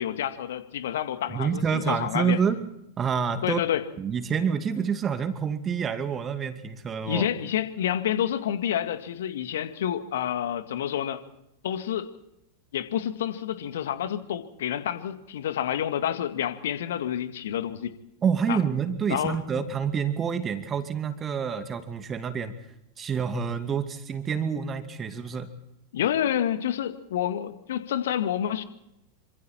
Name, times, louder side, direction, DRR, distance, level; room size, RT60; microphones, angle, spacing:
voice 1, 0.0-2.4 3.4-3.8 7.1-11.2 11.6-12.1 12.7-17.9 18.5-18.6 19.1-19.4 25.9-28.6, left 10 dB, 60° left, 10 dB, 2.1 m, -28 dB
voice 2, 1.3-2.7 3.0-3.6 4.0-7.3 18.2-22.5 23.0-25.5, right 6 dB, 25° right, 10 dB, 2.5 m, -28 dB
27.5 x 26.0 x 4.5 m, 0.83 s
figure-of-eight pair, 90°, 0 cm